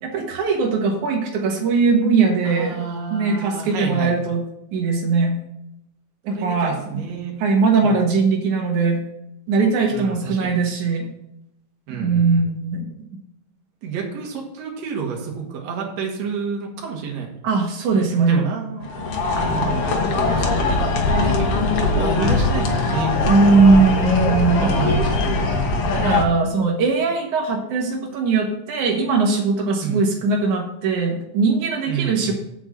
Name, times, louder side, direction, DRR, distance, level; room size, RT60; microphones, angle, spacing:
voice 1, 0.0-2.8 3.1-4.4 4.7-5.4 6.2-6.8 7.4-9.0 9.5-11.1 12.0-12.8 17.4-18.4 23.2-24.7 26.0-32.3, right 4 dB, 85° right, 1 dB, 2.9 m, -19 dB
voice 2, 2.4-4.2 6.3-7.4 7.8-8.0 9.9-10.6 11.9-12.4 13.8-17.3 17.8-19.8 20.3-20.8 21.2-23.1 24.6-25.6 29.8-30.0 31.9-32.3, right 6 dB, 65° right, 0 dB, 2.7 m, -29 dB
sound 1, 18.8-26.3, left 3 dB, 60° left, 2.0 m, -21 dB
6.8 x 6.2 x 7.6 m, 0.83 s
omnidirectional pair, 3.3 m